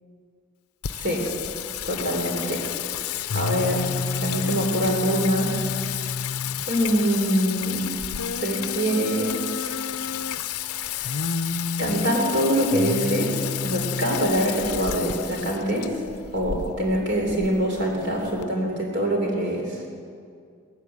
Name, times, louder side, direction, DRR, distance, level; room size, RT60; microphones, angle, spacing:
Singing, 0.8-18.4, left 7 dB, 85° left, 0.7 m, -30 dB
voice 1, 1.9-2.7 3.3-6.1 6.7-7.9 8.4-9.8 10.7-11.1 11.8-16.0 16.3-19.8, equal, 50° right, 0 dB, 3.6 m, -25 dB
18.5 x 16.0 x 9.5 m, 2.3 s
head